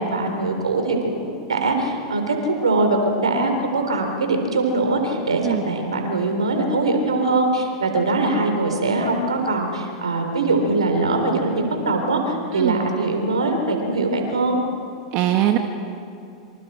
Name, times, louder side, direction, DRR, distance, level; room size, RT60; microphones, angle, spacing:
voice 1, 0.0-14.6, right 2 dB, 85° right, 4 dB, 3.8 m, -22 dB
voice 2, 15.1-15.6, right 13 dB, 50° right, 4 dB, 1.6 m, -21 dB
27.5 x 26.0 x 4.4 m, 2.6 s
hypercardioid pair, 95°, 3 cm